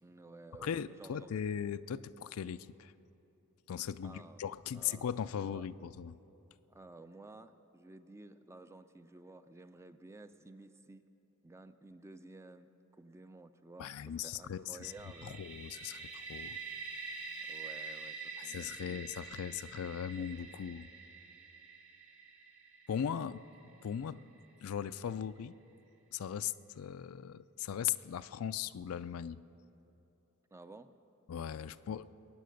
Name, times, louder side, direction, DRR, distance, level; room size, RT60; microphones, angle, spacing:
voice 1, 0.0-1.4 4.0-4.4 4.7-5.1 5.4-5.7 6.7-11.0 11.4-15.4 17.4-19.1 30.5-30.9, right 2 dB, 15° right, 10 dB, 0.4 m, -53 dB
voice 2, 0.6-2.9 3.7-6.2 13.8-14.9 15.2-16.6 18.4-20.9 22.9-23.4 23.8-24.2 24.6-25.5 26.1-29.4 31.3-32.1, left 8 dB, 75° left, 14 dB, 0.4 m, -38 dB
sound 1, 14.8-24.5, right 4 dB, 80° right, 2.0 m, -47 dB
21.0 x 9.2 x 6.5 m, 2.9 s
head